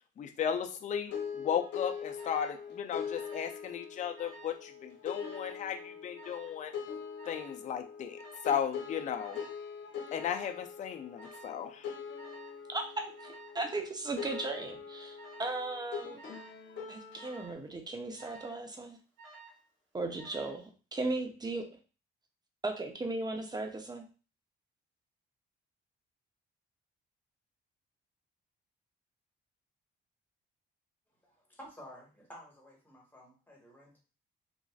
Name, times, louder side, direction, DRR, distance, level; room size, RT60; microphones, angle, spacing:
voice 1, 0.2-6.7 7.3-9.5 10.1-11.9, left 8 dB, 40° left, 6 dB, 0.4 m, -35 dB
sound 1, 1.1-17.5, left 7 dB, 65° left, 0.9 m, -43 dB
Alarm, 2.2-2.6 3.1-3.6 3.9-4.6 5.2-5.6 6.2-6.6 7.2-7.6 8.2-8.6 9.2-9.6 10.2-10.6 11.2-11.6 12.2-12.6 13.2-13.6 14.2-14.6 15.2-15.6 16.2-16.6 17.2-17.6 18.2-18.6 19.2-19.7 20.2-20.6, right 4 dB, 80° right, 1.3 m, -53 dB
voice 2, 12.7-16.2 16.9-19.0 19.9-21.6 22.6-24.1, right 2 dB, 20° right, 4 dB, 0.6 m, -37 dB
voice 3, 31.2-34.0, equal, 10° left, -3 dB, 1.4 m, -52 dB
3.0 x 2.5 x 2.4 m, 0.34 s
cardioid pair, 90°, 20 cm